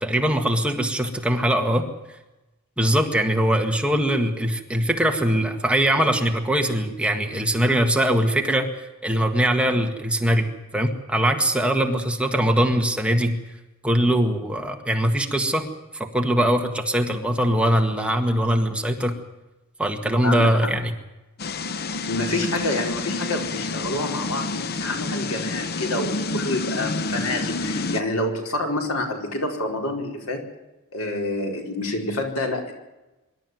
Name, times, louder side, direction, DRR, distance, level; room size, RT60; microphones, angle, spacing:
voice 1, 0.0-1.9 2.8-8.7 9.0-13.4 13.8-15.7 15.9-19.2 19.8-20.9, right 1 dB, 5° right, 3 dB, 1.8 m, -22 dB
sound 1, 21.4-28.0, left 3 dB, 45° left, 0.8 m, -28 dB
voice 2, 22.1-30.4 30.9-32.7, left 1 dB, 90° left, 2 dB, 4.6 m, -27 dB
24.5 x 12.5 x 9.4 m, 1.0 s
head